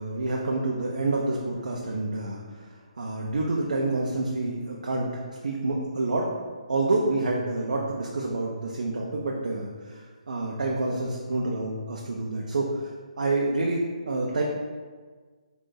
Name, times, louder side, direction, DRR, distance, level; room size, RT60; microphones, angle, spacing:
voice 1, 0.0-6.3 6.7-12.9 13.2-14.4, right 2 dB, 85° right, -2 dB, 0.6 m, -28 dB
3.9 x 2.5 x 3.8 m, 1.5 s
hypercardioid pair, 160°, 4 cm